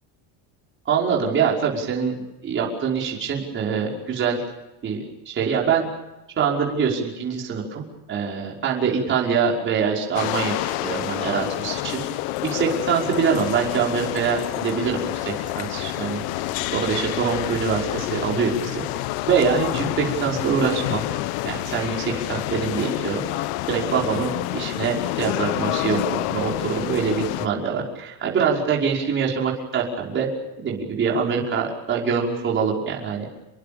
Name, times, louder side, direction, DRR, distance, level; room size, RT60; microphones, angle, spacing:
voice 1, 0.9-4.4 4.8-5.0 5.3-5.9 6.4-12.0 12.4-16.2 16.7-18.8 19.2-21.0 21.4-30.3 30.6-33.3, right 6 dB, 30° right, -2 dB, 5.6 m, -24 dB
sound 1, 10.1-27.5, left 17 dB, 85° left, 1.1 m, -28 dB
28.5 x 22.5 x 7.1 m, 0.95 s
cardioid pair, 170°, 41 cm